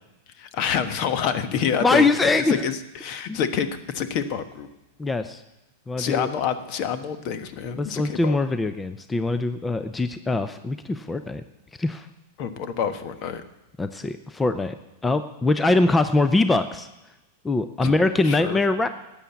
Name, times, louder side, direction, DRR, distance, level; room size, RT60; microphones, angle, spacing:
voice 1, 0.4-2.3 2.6-4.7 6.0-8.4 12.4-13.4 17.8-17.9 18.2-18.6, left 7 dB, 50° left, 10 dB, 1.2 m, -27 dB
voice 2, 1.8-2.6 3.3-3.4 5.0-5.4 5.9-6.3 7.8-11.4 11.8-12.1 13.8-14.8 15.0-16.9 17.4-18.9, left 2 dB, 10° left, 10 dB, 0.6 m, -22 dB
12.5 x 8.6 x 8.2 m, 0.99 s
hypercardioid pair, 110°, 0 cm